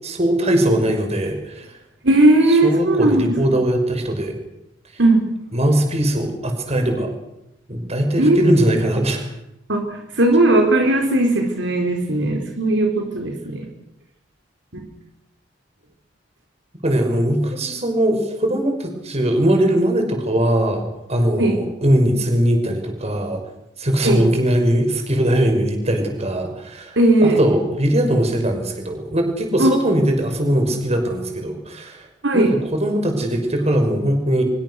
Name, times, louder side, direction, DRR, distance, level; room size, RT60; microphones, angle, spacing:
voice 1, 0.0-1.7 2.5-4.3 4.9-5.0 5.5-7.1 7.7-9.2 16.8-23.4 23.8-32.1 32.3-34.4, right 1 dB, 35° right, 4 dB, 5.9 m, -20 dB
voice 2, 2.0-3.4 5.0-5.3 8.2-8.5 9.7-13.7 14.7-14.8 21.4-21.6 24.0-24.2 27.0-27.4 29.6-29.7 32.2-32.5, right 2 dB, 70° right, 3 dB, 4.4 m, -17 dB
25.5 x 23.5 x 6.6 m, 0.86 s
head